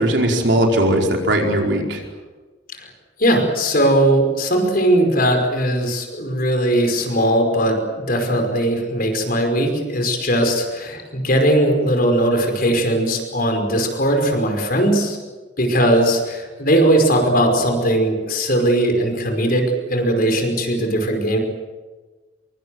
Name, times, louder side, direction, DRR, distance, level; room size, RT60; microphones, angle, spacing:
voice 1, 0.0-2.0, right 1 dB, 65° right, 1 dB, 4.8 m, -18 dB
voice 2, 3.2-15.2 15.6-21.4, right 1 dB, 50° left, 4 dB, 5.3 m, -19 dB
25.0 x 23.5 x 7.9 m, 1.3 s
head